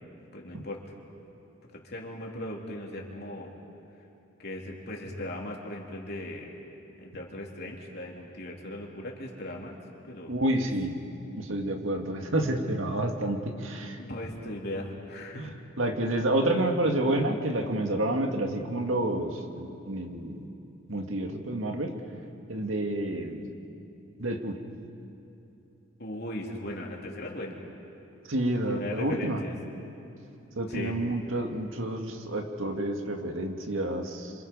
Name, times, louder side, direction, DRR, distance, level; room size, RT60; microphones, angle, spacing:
voice 1, 0.3-0.8 1.7-3.5 4.4-6.5 7.0-9.8 10.0-10.4 14.0-15.5 26.0-27.6 28.7-29.5 30.7-31.0, left 1 dB, 55° left, -1 dB, 3.3 m, -38 dB
voice 2, 10.3-10.9 11.4-14.0 15.4-15.5 15.8-20.5 20.9-21.9 22.5-23.5 24.2-24.6 28.3-29.4 30.6-34.3, right 1 dB, 80° right, 3 dB, 2.0 m, -29 dB
27.5 x 26.5 x 5.5 m, 2.9 s
head